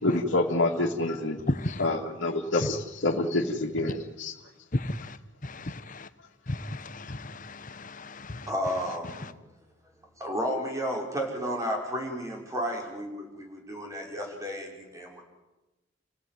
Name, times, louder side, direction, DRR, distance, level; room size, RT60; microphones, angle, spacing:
voice 1, 0.0-1.4 1.8-4.3, left 2 dB, 85° left, 2.6 m, -27 dB
voice 2, 4.7-5.2 5.4-6.1 6.5-8.5, left 1 dB, 45° left, 1.2 m, -35 dB
voice 3, 8.5-9.3 10.2-15.2, equal, 15° right, 5.8 m, -32 dB
30.0 x 17.0 x 9.5 m
head